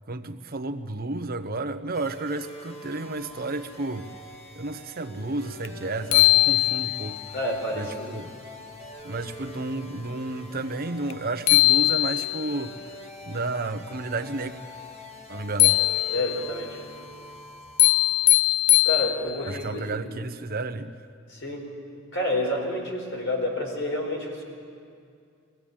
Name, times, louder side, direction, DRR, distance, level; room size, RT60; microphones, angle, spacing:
voice 1, 0.1-4.1 4.6-7.2 7.7-8.3 9.0-14.5 15.3-15.7 19.5-20.9, right 2 dB, 45° right, 8 dB, 0.9 m, -32 dB
sound 1, 1.9-18.4, equal, 30° left, 2.0 m, -45 dB
sound 2, 5.6-5.7 6.1-7.2 11.1-11.2 11.5-12.5 15.6-16.5 17.8-19.5, left 16 dB, 85° left, 0.4 m, -20 dB
voice 2, 7.3-8.1 15.6-15.7 16.1-16.8 18.8-20.0 21.3-21.7 22.1-24.4, left 1 dB, 65° left, 0 dB, 4.6 m, -29 dB
23.0 x 16.0 x 8.8 m, 2.3 s
head